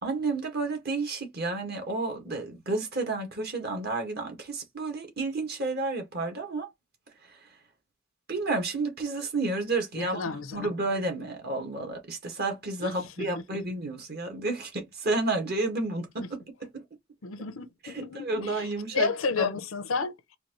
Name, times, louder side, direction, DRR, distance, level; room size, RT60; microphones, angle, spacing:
voice 1, 0.0-6.7 8.3-16.8 17.8-19.1 19.3-19.5, right 2 dB, 50° right, 1.7 m, -31 dB
voice 2, 9.9-10.7 12.8-13.6 17.2-20.4, left 4 dB, 85° left, 0.8 m, -32 dB
4.4 x 2.8 x 3.1 m
head